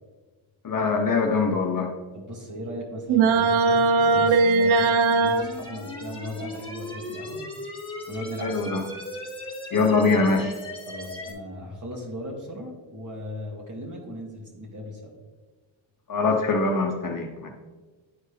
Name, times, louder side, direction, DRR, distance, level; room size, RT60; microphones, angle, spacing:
voice 1, 0.6-1.9 8.4-8.8 9.7-10.5 16.1-17.5, left 4 dB, 45° left, 2 dB, 0.8 m, -23 dB
voice 2, 2.1-7.4 8.1-8.7 10.9-15.1, equal, 40° right, -1 dB, 2.2 m, -37 dB
sound 1, 3.1-5.4, right 4 dB, 90° right, 0.6 m, -19 dB
sound 2, 3.3-11.3, left 1 dB, 10° left, 1.8 m, -38 dB
11.0 x 4.5 x 3.2 m, 1.3 s
cardioid pair, 80°, 46 cm